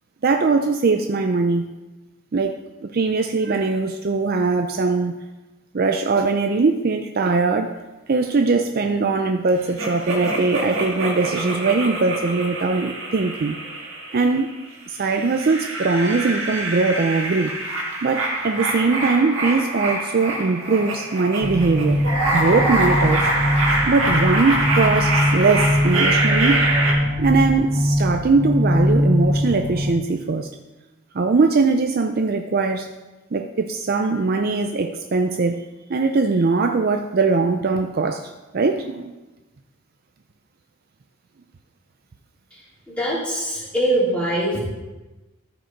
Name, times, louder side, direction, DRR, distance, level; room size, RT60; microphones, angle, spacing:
voice 1, 0.2-1.7 2.3-2.5 2.8-5.1 5.7-7.7 8.1-13.6 14.1-14.5 14.9-17.6 17.9-22.0 22.3-23.3 23.9-26.7 27.2-30.5 31.1-32.9 33.3-35.6 35.9-39.1, right 4 dB, 45° right, 6 dB, 0.4 m, -21 dB
sound 1, 9.8-14.5 15.0-26.9, right 1 dB, 60° right, 1.7 m, -25 dB
sound 2, 21.4-29.9, equal, 15° right, 0.8 m, -22 dB
voice 2, 42.5-44.6, right 1 dB, 5° left, -8 dB, 3.2 m, -23 dB
14.0 x 5.0 x 4.6 m, 1.1 s
head